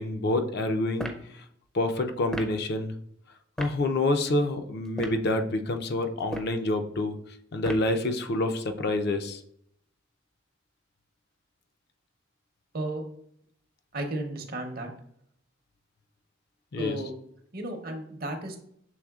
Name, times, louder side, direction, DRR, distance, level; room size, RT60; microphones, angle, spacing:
voice 1, 0.0-1.4 1.7-2.9 3.6-7.2 7.5-9.4 16.7-17.0, left 2 dB, 55° left, 6 dB, 0.4 m, -27 dB
sound 1, 1.0-1.3 2.3-2.6 3.6-3.8 4.9-5.3 6.2-6.6 7.6-8.0, right 1 dB, 5° left, 0.4 m, -35 dB
voice 2, 13.9-14.9 16.8-17.1 17.5-18.6, right 1 dB, 50° right, 4 dB, 0.7 m, -33 dB
6.2 x 3.4 x 2.3 m, 0.71 s
head